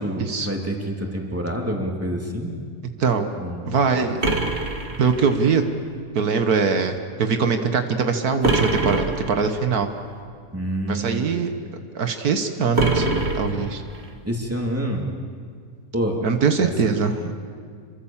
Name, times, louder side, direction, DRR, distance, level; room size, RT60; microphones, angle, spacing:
voice 1, 0.0-2.5 3.4-3.7 10.5-11.3 14.2-15.0 15.9-16.2 16.6-16.9, equal, 10° right, 0 dB, 3.1 m, -27 dB
voice 2, 3.0-3.3 3.7-4.2 5.0-5.6 6.2-9.9 10.9-11.5 11.9-13.8 16.2-17.3, right 5 dB, 75° right, 7 dB, 1.8 m, -22 dB
sound 1, 4.2-5.6 8.4-9.6 12.7-14.1, right 2 dB, 45° right, 2.2 m, -24 dB
27.5 x 24.0 x 7.4 m, 2.1 s
omnidirectional pair, 1.6 m